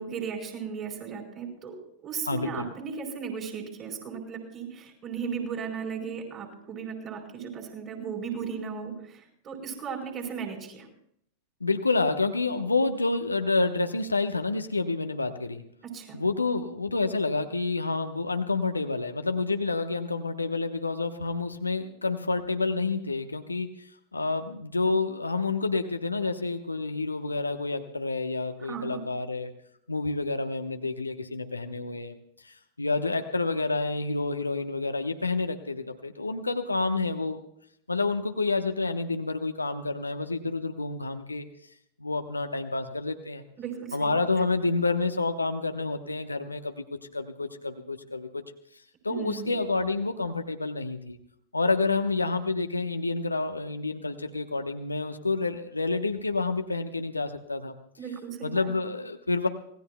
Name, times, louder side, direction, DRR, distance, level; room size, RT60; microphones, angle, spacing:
voice 1, 0.0-1.8 2.0-10.9 15.8-16.2 28.6-29.0 43.6-44.1 49.1-49.5 58.0-58.7, right 6 dB, 30° right, 1 dB, 4.5 m, -36 dB
voice 2, 2.3-2.7 11.6-15.6 16.1-23.7 24.1-29.5 29.9-32.2 32.4-37.4 37.9-41.5 42.0-43.4 43.9-46.8 47.1-48.4 49.0-51.2 51.5-57.8 58.4-59.5, left 3 dB, 80° left, 7 dB, 1.1 m, -29 dB
26.0 x 18.0 x 2.3 m, 0.70 s
figure-of-eight pair, 90°, 0 cm